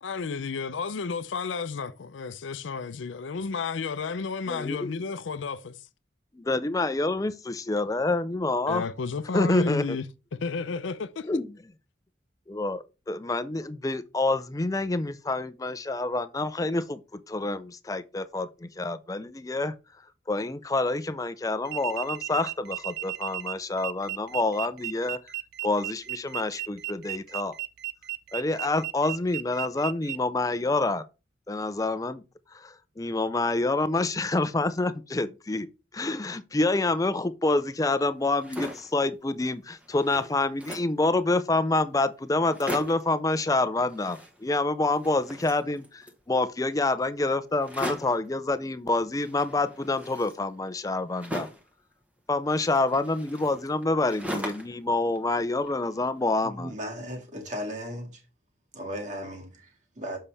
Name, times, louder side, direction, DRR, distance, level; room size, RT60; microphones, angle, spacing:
voice 1, 0.0-5.8 8.7-10.1 10.3-11.3, left 4 dB, 85° left, 0.5 m, -32 dB
voice 2, 4.5-4.9 6.3-8.8 9.3-10.0 11.3-11.5 12.5-19.7 20.3-25.2 25.6-27.5 28.3-31.0 31.5-32.2 32.6-35.7 35.9-51.5 52.3-56.7, left 2 dB, 20° left, 0.4 m, -27 dB
sound 1, 21.6-30.2, right 18 dB, 60° right, 0.5 m, -35 dB
sound 2, 38.2-39.0 39.5-39.6 39.8-41.0 41.7-41.8 42.0-42.1 42.4-43.1 43.9-44.7 44.9-46.2 47.6-48.3 49.2-51.7 52.5-54.8 55.2-56.1, equal, 10° right, 1.1 m, -39 dB
voice 3, 56.4-58.2 58.7-60.2, equal, 40° right, 2.0 m, -36 dB
7.2 x 5.5 x 3.3 m
head